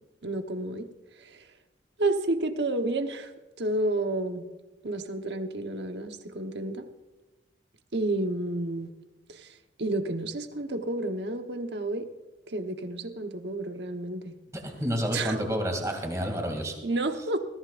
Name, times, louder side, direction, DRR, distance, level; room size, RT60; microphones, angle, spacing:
voice 1, 0.2-0.9 1.2-1.5 2.0-3.3 3.6-4.5 4.8-6.9 7.9-8.9 9.3-12.0 12.5-14.4 15.1-15.5 16.8-17.4, right 2 dB, 75° right, 6 dB, 1.1 m, -30 dB
voice 2, 14.6-16.8, equal, 20° right, 3 dB, 2.7 m, -29 dB
21.5 x 15.0 x 2.6 m, 1.1 s
head